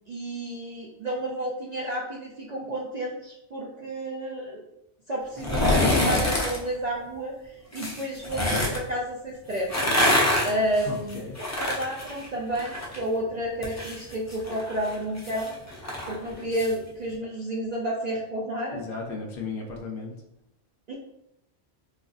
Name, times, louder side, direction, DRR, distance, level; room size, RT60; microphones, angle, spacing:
voice 1, 0.1-4.6 5.1-9.7 10.4-11.2 11.6-15.5 16.1-18.8 20.9-21.0, right 1 dB, 55° right, -3 dB, 0.5 m, -31 dB
sound 1, 5.4-6.6 7.7-8.8 9.5-13.0 13.3-16.7 17.1-17.2, left 1 dB, 25° left, 0.3 m, -26 dB
voice 2, 10.8-11.4 18.7-20.1, left 4 dB, 60° left, 1 dB, 0.7 m, -35 dB
4.1 x 2.5 x 2.3 m, 0.83 s
omnidirectional pair, 1.1 m